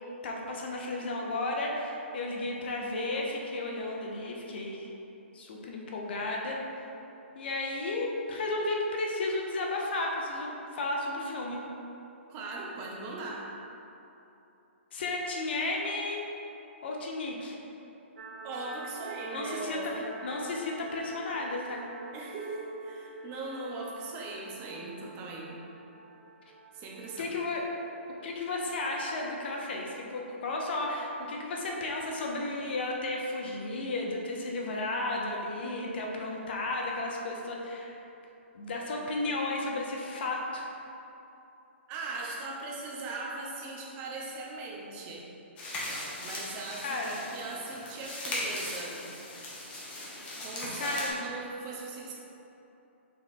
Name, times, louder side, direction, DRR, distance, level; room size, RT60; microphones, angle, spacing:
voice 1, 0.2-4.9 5.3-6.6 7.3-11.6 14.9-16.2 16.8-17.6 19.3-21.9 27.2-27.6 28.2-38.0 38.5-40.7 46.8-47.2 50.8-51.3, left 2 dB, 55° left, -1 dB, 0.7 m, -33 dB
voice 2, 12.3-13.5 18.4-20.1 22.1-25.6 26.7-27.3 41.9-45.3 46.2-49.0 50.4-52.1, right 3 dB, 25° right, -3 dB, 0.7 m, -39 dB
sound 1, 18.2-30.0, right 3 dB, 65° right, 0.5 m, -48 dB
sound 2, 45.6-51.1, left 1 dB, 15° left, 0.8 m, -38 dB
4.5 x 3.2 x 3.6 m, 2.9 s
hypercardioid pair, 155°, 7 cm